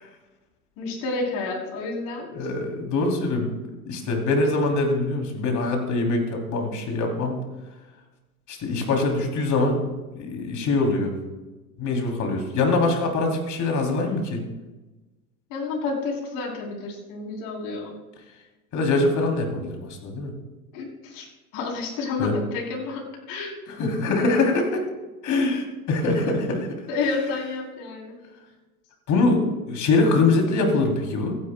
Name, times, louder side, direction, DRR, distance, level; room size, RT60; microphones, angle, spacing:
voice 1, 0.8-2.3 15.5-18.0 20.7-21.3 21.5-23.6 26.9-28.2, left 3 dB, 55° left, 0 dB, 3.6 m, -30 dB
voice 2, 2.3-3.5 3.8-7.4 8.5-9.8 10.1-11.1 11.8-14.4 18.7-20.3 22.2-22.3 23.8-24.8 25.2-26.7 29.1-31.4, left 3 dB, 40° left, 2 dB, 3.1 m, -23 dB
25.0 x 10.0 x 2.2 m, 1.1 s
hypercardioid pair, 85°, 44 cm